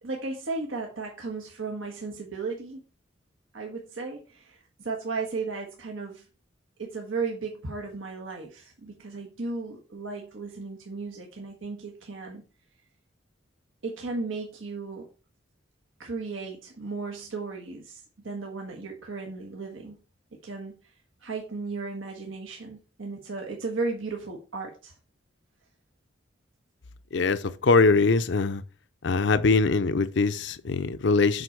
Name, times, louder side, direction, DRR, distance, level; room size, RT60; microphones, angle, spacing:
voice 1, 0.0-2.8 3.5-6.3 6.8-12.4 13.8-15.1 16.0-20.0 20.4-20.9 21.2-25.0, right 3 dB, 90° right, 1.5 m, -35 dB
voice 2, 27.1-28.6 29.0-31.4, left 4 dB, 65° left, 0.5 m, -22 dB
7.9 x 5.3 x 4.6 m
head